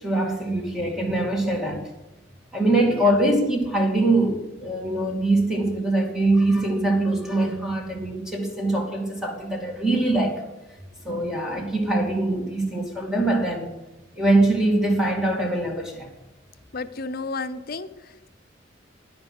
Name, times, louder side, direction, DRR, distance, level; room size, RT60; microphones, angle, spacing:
voice 1, 0.0-1.9 2.5-10.4 11.0-13.7 14.2-16.1, right 2 dB, 5° right, 2.6 m, -23 dB
voice 2, 16.7-18.3, left 3 dB, 50° left, 0.7 m, -33 dB
11.0 x 10.5 x 7.9 m
head